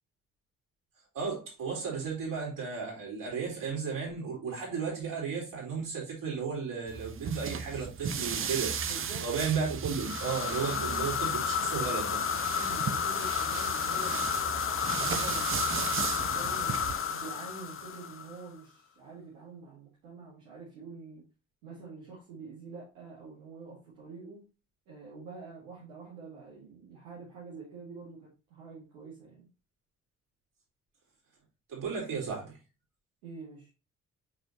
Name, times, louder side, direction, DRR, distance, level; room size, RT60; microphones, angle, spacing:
voice 1, 1.1-8.8 9.2-12.2 31.7-32.6, right 6 dB, 55° right, -2 dB, 4.0 m, -34 dB
sound 1, 6.9-16.9, right 7 dB, 35° right, 0.8 m, -36 dB
voice 2, 8.8-9.4 10.4-11.1 12.6-14.5 14.9-21.2 21.6-24.4 24.9-29.5 33.2-33.7, right 4 dB, 70° right, -7 dB, 2.2 m, -46 dB
sound 2, 9.9-18.4, left 7 dB, 35° left, 0.8 m, -32 dB
6.2 x 5.5 x 2.8 m, 0.30 s
figure-of-eight pair, 40°, 39 cm